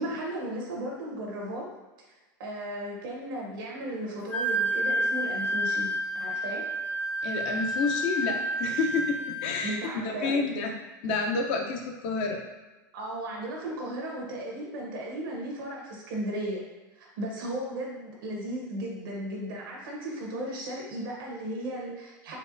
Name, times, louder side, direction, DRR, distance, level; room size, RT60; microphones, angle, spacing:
voice 1, 0.0-1.7 2.4-6.7 9.6-10.4 12.9-16.6 17.0-22.4, right 1 dB, 80° right, -1 dB, 1.1 m, -35 dB
Wind instrument woodwind instrument, 4.3-9.8, right 1 dB, 15° left, 0.4 m, -30 dB
voice 2, 7.2-10.7 11.0-12.4, left 4 dB, 55° left, 2 dB, 0.6 m, -29 dB
4.4 x 2.2 x 2.5 m, 1.2 s
hypercardioid pair, 110°, 11 cm